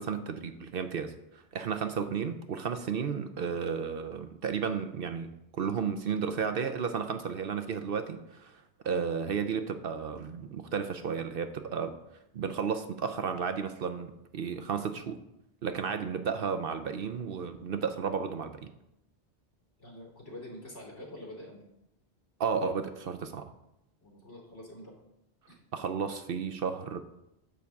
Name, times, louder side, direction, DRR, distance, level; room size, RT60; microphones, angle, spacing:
voice 1, 0.0-11.9 12.3-15.2 15.6-18.7 22.4-23.5 25.7-27.0, right 6 dB, 60° right, 9 dB, 0.7 m, -33 dB
voice 2, 19.8-21.6 24.0-24.9 25.5-25.6, left 1 dB, 75° left, -2 dB, 2.8 m, -46 dB
9.6 x 3.6 x 7.1 m, 0.83 s
omnidirectional pair, 1.2 m